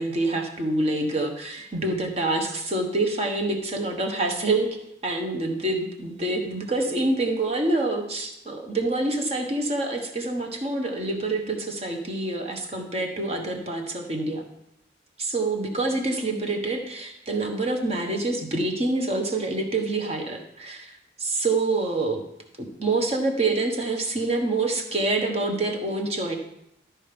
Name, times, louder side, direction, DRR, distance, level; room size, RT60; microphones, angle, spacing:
voice 1, 0.0-4.8 5.0-14.4 15.2-22.2 22.6-26.3, right 2 dB, 35° right, 3 dB, 1.2 m, -26 dB
13.0 x 4.5 x 5.2 m, 0.79 s
head